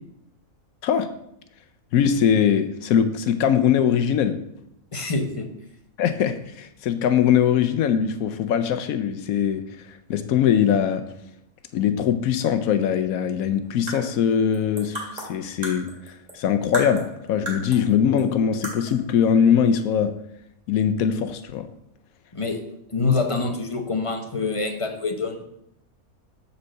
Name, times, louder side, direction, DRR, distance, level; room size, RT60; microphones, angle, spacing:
voice 1, 0.8-1.1 1.9-4.5 6.0-11.1 11.7-20.2 20.7-21.7, left 8 dB, 80° left, 1.1 m, -22 dB
voice 2, 4.9-5.5 22.3-22.6 22.9-25.4, left 3 dB, 25° left, 0.8 m, -25 dB
sound 1, 13.6-16.4 16.7-17.9 18.2-18.3 18.6-19.1, right 1 dB, 30° right, 1.9 m, -34 dB
6.9 x 4.5 x 6.5 m
omnidirectional pair, 1.5 m